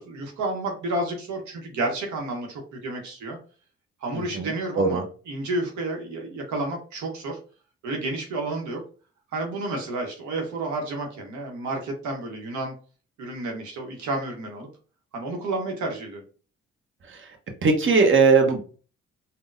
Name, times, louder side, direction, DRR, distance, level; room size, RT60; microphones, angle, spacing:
voice 1, 0.0-3.4 4.0-7.4 7.8-8.8 9.3-12.7 13.2-14.7 15.1-16.2, right 2 dB, 75° right, 2 dB, 0.9 m, -31 dB
voice 2, 4.1-4.5 4.8-5.0 17.6-18.6, right 4 dB, 40° right, 3 dB, 0.9 m, -19 dB
3.7 x 2.2 x 2.5 m, 0.37 s
supercardioid pair, 50°, 29 cm